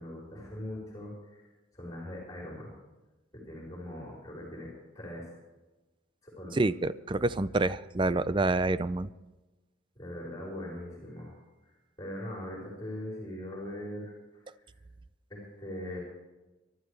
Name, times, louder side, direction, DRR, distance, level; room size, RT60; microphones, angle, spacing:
voice 1, 0.0-1.5 1.7-2.7 3.3-5.3 6.2-6.6 10.0-11.4 11.7-14.2 15.3-16.0, left 1 dB, 20° left, -4 dB, 4.4 m, -41 dB
voice 2, 6.6-9.1, right 2 dB, 25° right, 15 dB, 0.4 m, -27 dB
23.5 x 12.5 x 3.3 m, 1.1 s
head